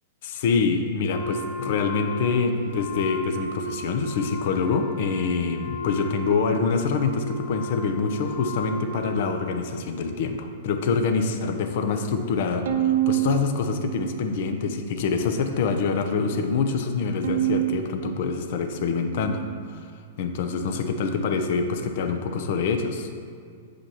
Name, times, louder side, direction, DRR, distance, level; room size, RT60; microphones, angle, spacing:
voice 1, 0.2-19.4 19.7-19.9 20.2-23.1, left 5 dB, 60° left, 6 dB, 0.6 m, -25 dB
Wind instrument woodwind instrument, 1.1-9.9, left 1 dB, 85° left, 0.8 m, -35 dB
Bowed string instrument, 12.7-15.0 15.5-16.3 17.2-19.8, right 13 dB, 70° right, 0.5 m, -29 dB
7.9 x 5.0 x 2.9 m, 2.1 s
hypercardioid pair, 135°, 0 cm